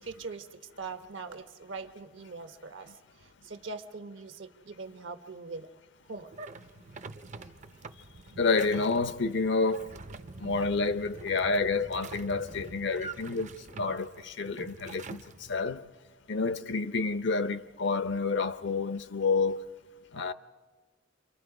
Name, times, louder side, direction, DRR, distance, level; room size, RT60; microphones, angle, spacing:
voice 1, 0.0-5.7 6.1-6.3, right 4 dB, 75° right, 1.1 m, -42 dB
sound 1, 6.3-15.6, right 3 dB, 40° right, 0.6 m, -45 dB
voice 2, 8.4-9.9 10.4-13.5 13.8-15.2 15.5-15.8 16.3-19.6 20.1-20.3, left 4 dB, 65° left, 0.7 m, -29 dB
28.5 x 23.5 x 4.9 m
head